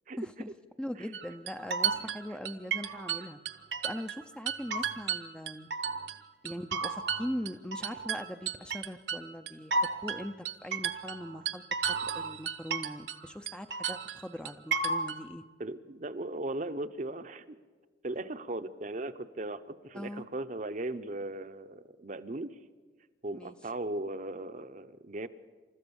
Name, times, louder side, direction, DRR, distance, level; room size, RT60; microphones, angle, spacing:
voice 1, 0.2-0.5 0.8-3.4 3.8-5.7 6.4-9.7 10.0-11.6 12.0-15.4 19.9-20.2 23.3-23.5, equal, 5° left, 8 dB, 0.5 m, -40 dB
sound 1, 1.1-4.2 4.5-6.2 6.5-13.2 13.5-15.2, right 5 dB, 65° right, 1.0 m, -33 dB
voice 2, 15.6-17.6 18.0-22.6 23.2-25.3, right 2 dB, 40° right, 10 dB, 0.7 m, -38 dB
28.5 x 13.5 x 7.1 m, 1.4 s
head